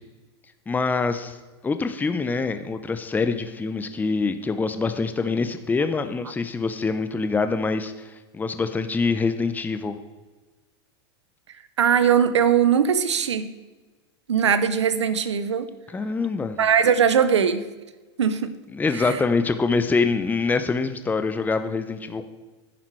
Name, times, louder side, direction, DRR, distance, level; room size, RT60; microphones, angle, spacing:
voice 1, 0.7-1.4 1.6-10.0 15.9-16.6 18.7-22.3, left 4 dB, 10° left, 9 dB, 0.8 m, -25 dB
voice 2, 11.8-13.5 14.3-15.7 16.6-17.6 18.2-18.5 18.9-19.2, right 7 dB, 90° right, 13 dB, 0.9 m, -20 dB
10.5 x 10.0 x 4.7 m, 1.3 s
hypercardioid pair, 110°, 14 cm